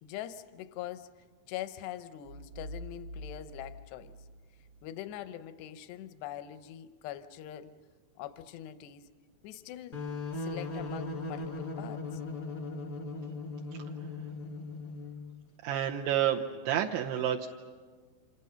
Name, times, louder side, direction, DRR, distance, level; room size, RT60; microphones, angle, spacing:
voice 1, 0.0-1.1 1.5-4.2 4.8-7.8 8.2-9.1 9.4-10.0 10.3-12.2, left 12 dB, 80° left, 11 dB, 2.5 m, -43 dB
sound 1, 2.2-4.9, equal, 50° right, 1.8 m, -46 dB
sound 2, 9.9-15.4, left 3 dB, 50° left, 1.2 m, -38 dB
voice 2, 15.6-17.5, right 10 dB, 75° right, -1 dB, 3.0 m, -29 dB
29.5 x 27.5 x 5.7 m, 1.5 s
omnidirectional pair, 5.6 m